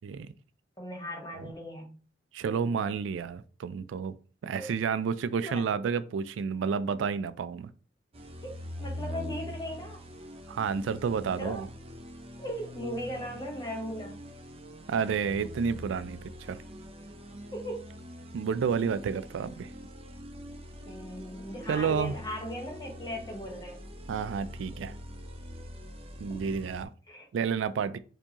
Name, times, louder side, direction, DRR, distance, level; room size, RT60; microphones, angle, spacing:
voice 1, 0.8-1.9 4.6-4.7 5.4-5.6 8.4-10.0 11.4-11.7 12.4-14.2 17.5-17.9 20.9-23.8 26.3-26.6 27.1-27.3, equal, 20° left, 1.1 m, -38 dB
voice 2, 2.3-4.1 4.4-7.7 10.5-11.7 14.9-16.6 18.3-19.7 21.7-22.1 24.1-24.9 26.2-26.9 27.3-28.0, right 6 dB, 90° right, 0.3 m, -30 dB
sound 1, 8.1-26.9, equal, 30° right, 0.6 m, -43 dB
4.5 x 2.8 x 2.8 m
head